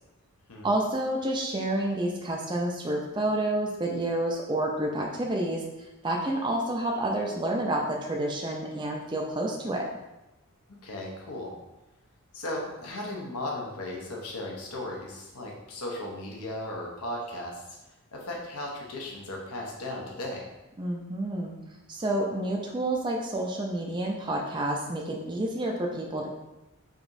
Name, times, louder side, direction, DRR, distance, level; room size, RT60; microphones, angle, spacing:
voice 1, 0.6-5.6 6.0-9.9 20.8-21.5 21.9-26.3, right 1 dB, 20° right, 0 dB, 0.4 m, -29 dB
voice 2, 10.8-11.5 12.3-17.6 18.1-20.4, left 1 dB, 75° left, -1 dB, 0.8 m, -36 dB
4.9 x 3.0 x 2.6 m, 0.98 s
head